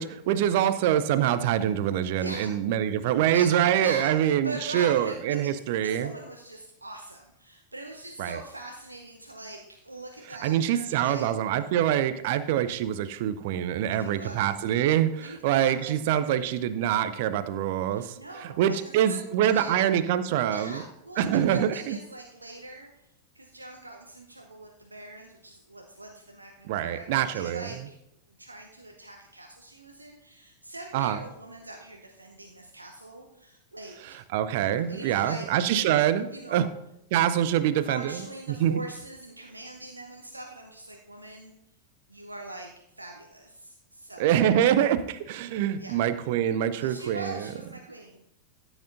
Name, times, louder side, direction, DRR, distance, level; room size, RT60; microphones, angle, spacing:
voice 1, 0.0-6.1 8.2-8.4 10.4-20.8 21.2-22.0 26.7-27.9 30.9-31.2 34.3-36.7 37.1-38.8 44.2-47.5, right 10 dB, 50° right, 13 dB, 0.6 m, -25 dB
voice 2, 2.2-2.5 3.3-5.5 5.8-11.3 14.0-14.5 15.2-15.9 16.2-16.5 17.9-19.9 20.5-22.9 23.3-26.5 26.8-28.0 28.4-34.2 34.9-35.4 36.3-36.7 37.7-41.5 42.1-42.7 43.0-44.3 45.8-46.0 46.8-48.2, right 1 dB, 80° right, 1 dB, 0.8 m, -42 dB
13.5 x 8.0 x 2.6 m, 0.80 s
figure-of-eight pair, 90°, 0 cm